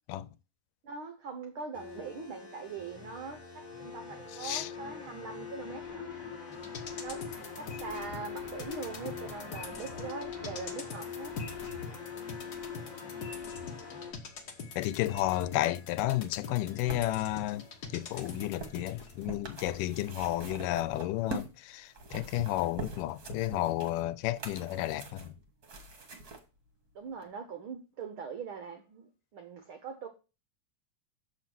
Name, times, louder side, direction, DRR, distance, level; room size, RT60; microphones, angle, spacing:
voice 1, 0.8-6.1 7.0-7.2 7.6-11.3 26.9-30.1, right 5 dB, 75° right, 1.2 m, -42 dB
sound 1, 1.7-14.1, left 6 dB, 40° left, 0.6 m, -43 dB
voice 2, 4.3-4.7 14.8-17.6 17.9-25.3, left 15 dB, 85° left, 2.1 m, -32 dB
sound 2, 6.5-19.3 19.7-19.8, left 4 dB, 65° left, 0.9 m, -45 dB
sound 3, 16.4-21.6 21.9-26.4 27.2-27.3, right 3 dB, 50° right, 1.2 m, -44 dB
7.3 x 5.7 x 6.0 m
omnidirectional pair, 3.8 m